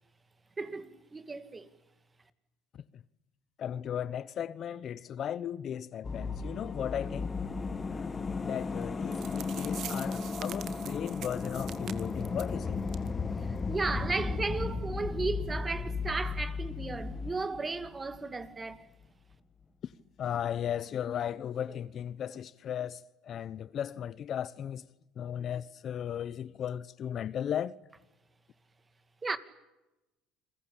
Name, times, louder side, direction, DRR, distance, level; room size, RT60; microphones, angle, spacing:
voice 1, 0.6-1.7 13.7-18.8 29.2-29.4, right 3 dB, 20° right, 2.3 m, -34 dB
voice 2, 3.6-7.3 8.4-12.8 20.2-24.8 25.2-27.7, left 9 dB, 50° left, 0.8 m, -36 dB
sound 1, 6.0-18.5 18.7-18.8, left 4 dB, 25° left, 2.0 m, -35 dB
sound 2, 8.8-8.9 9.1-12.5 12.9-13.1 13.4-13.5 14.0-14.1, right 10 dB, 55° right, 2.1 m, -44 dB
29.5 x 21.5 x 8.6 m
supercardioid pair, 95°, 0 cm